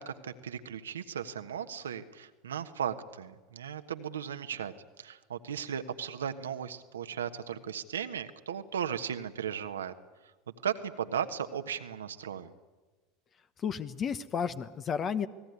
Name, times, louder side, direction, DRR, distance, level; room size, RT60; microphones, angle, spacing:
voice 1, 0.0-4.7 5.0-9.9 10.6-12.5, right 8 dB, 85° right, 9 dB, 1.3 m, -36 dB
voice 2, 13.6-15.3, left 7 dB, 35° left, 11 dB, 1.1 m, -32 dB
28.5 x 19.0 x 9.5 m, 1.2 s
hypercardioid pair, 80°, 0 cm